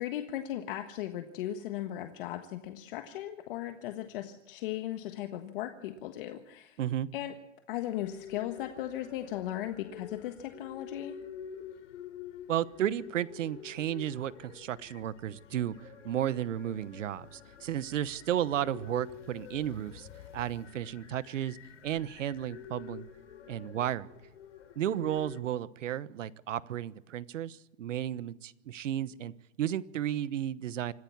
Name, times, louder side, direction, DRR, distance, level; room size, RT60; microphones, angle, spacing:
voice 1, 0.0-6.8 7.1-7.3 7.7-11.2, left 12 dB, 45° left, 6 dB, 1.6 m, -37 dB
sound 1, 7.9-25.4, left 8 dB, 75° left, 3.5 m, -48 dB
voice 2, 12.5-20.1 20.3-21.6 21.8-23.1 23.5-24.1 24.8-29.3 29.6-30.9, right 11 dB, 80° right, 17 dB, 1.2 m, -33 dB
26.5 x 14.0 x 7.3 m, 0.85 s
hypercardioid pair, 155°, 37 cm